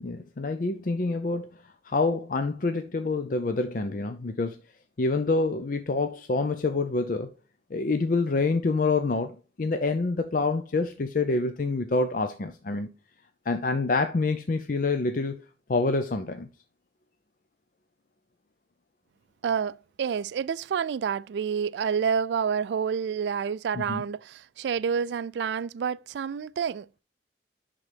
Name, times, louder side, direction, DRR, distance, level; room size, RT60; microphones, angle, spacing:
voice 1, 0.0-4.6 5.0-7.3 7.7-12.9 13.5-15.4 15.7-16.5 23.7-24.0, left 3 dB, 50° left, 0.5 m, -27 dB
voice 2, 19.4-27.0, right 7 dB, 70° right, 0.3 m, -29 dB
10.5 x 3.8 x 3.4 m
head